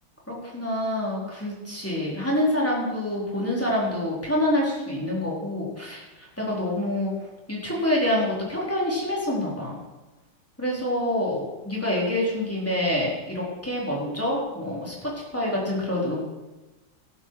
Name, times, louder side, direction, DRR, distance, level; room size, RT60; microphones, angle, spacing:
voice 1, 0.3-7.1 7.5-9.7 10.6-16.2, left 1 dB, 5° left, -5 dB, 4.2 m, -26 dB
15.0 x 12.5 x 4.9 m, 1.1 s
omnidirectional pair, 2.3 m